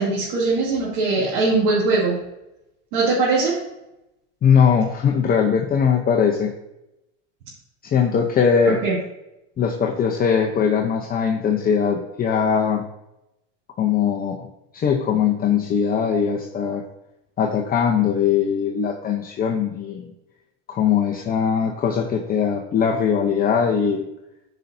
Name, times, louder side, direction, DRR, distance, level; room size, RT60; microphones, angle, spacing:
voice 1, 0.0-2.2 2.9-3.6 8.6-8.9, right 3 dB, 55° right, -6 dB, 2.7 m, -21 dB
voice 2, 4.4-6.5 7.8-8.8 9.6-12.8 13.8-14.5 14.7-16.8 17.4-20.0 20.7-24.0, left 7 dB, 25° left, 2 dB, 0.7 m, -20 dB
13.0 x 5.4 x 2.7 m, 0.91 s
supercardioid pair, 120°, 38 cm